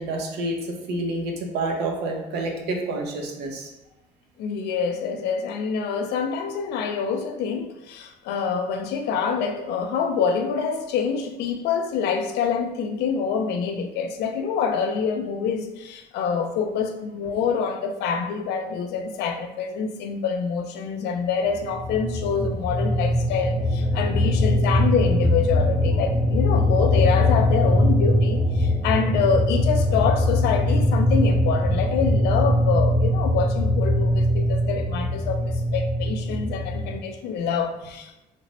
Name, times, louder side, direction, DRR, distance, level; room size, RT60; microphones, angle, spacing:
voice 1, 0.0-3.7, right 2 dB, 80° right, 0.7 m, -28 dB
voice 2, 4.4-38.1, left 6 dB, 80° left, 0.4 m, -26 dB
sound 1, 21.6-37.0, left 1 dB, 25° left, 0.6 m, -21 dB
3.3 x 2.0 x 4.0 m
cardioid pair, 110°, 17 cm